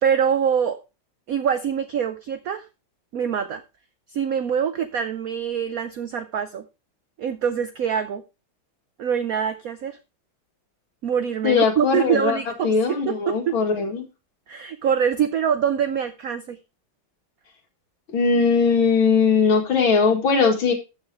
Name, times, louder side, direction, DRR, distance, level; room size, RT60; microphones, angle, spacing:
voice 1, 0.0-0.8 1.3-2.7 3.1-3.6 4.1-6.6 7.2-8.2 9.0-10.0 11.0-13.5 14.5-16.6, right 8 dB, 75° right, 11 dB, 0.8 m, -24 dB
voice 2, 11.4-12.4 12.6-14.1 18.1-20.7, left 5 dB, 75° left, 3 dB, 2.7 m, -19 dB
13.0 x 6.5 x 3.4 m, 0.28 s
omnidirectional pair, 2.2 m